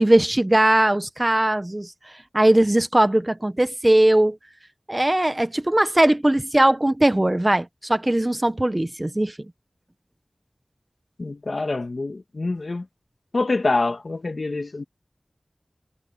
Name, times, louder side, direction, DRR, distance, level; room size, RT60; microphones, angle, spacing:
voice 1, 0.0-1.9 2.3-4.4 4.9-9.3, right 1 dB, 30° right, 1.1 m, -19 dB
voice 2, 11.2-12.8 13.3-14.8, left 3 dB, 80° left, 1.4 m, -25 dB
wide cardioid pair, 55°, 0 cm